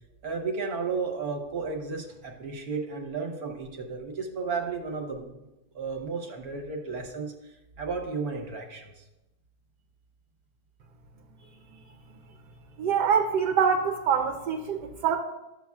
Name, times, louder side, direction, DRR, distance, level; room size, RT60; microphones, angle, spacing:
voice 1, 0.2-5.4 5.7-9.0, right 4 dB, 60° right, 2 dB, 1.4 m, -33 dB
voice 2, 12.8-15.2, right 7 dB, 80° right, 4 dB, 1.3 m, -25 dB
12.0 x 7.0 x 2.3 m, 0.99 s
omnidirectional pair, 1.8 m